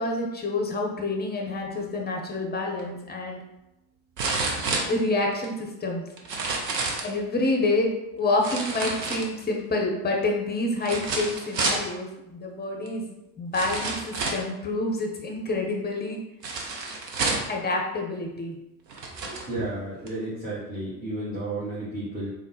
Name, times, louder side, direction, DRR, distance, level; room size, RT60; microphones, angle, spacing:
voice 1, 0.0-3.4 4.9-6.0 7.0-13.1 13.4-16.2 17.5-18.6, left 2 dB, 20° left, 1 dB, 0.8 m, -28 dB
sound 1, 2.8-2.9 4.2-5.5 6.2-7.1 8.4-9.6 10.8-11.9 12.9-13.0 13.5-14.5 16.4-17.6 18.4-18.5 18.9-19.5 20.1-20.2, right 3 dB, 80° right, 0.7 m, -29 dB
voice 2, 19.2-22.3, right 2 dB, 20° right, -10 dB, 1.4 m, -32 dB
3.7 x 2.3 x 4.0 m, 0.93 s
figure-of-eight pair, 55°, 49 cm